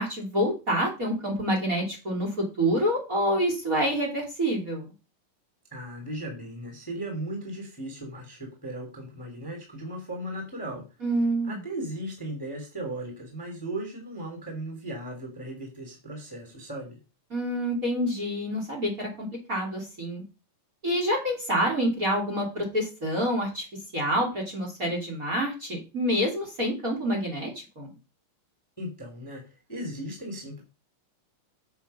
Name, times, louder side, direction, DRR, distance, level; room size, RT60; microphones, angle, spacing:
voice 1, 0.0-4.9 11.0-11.6 17.3-20.2 20.8-23.6 23.9-27.5 27.8-27.9, equal, 25° right, 2 dB, 3.1 m, -27 dB
voice 2, 5.7-10.8 11.4-17.0 28.8-29.4 29.7-30.6, right 1 dB, 5° left, 1 dB, 2.5 m, -37 dB
7.6 x 7.3 x 5.7 m, 0.30 s
omnidirectional pair, 3.9 m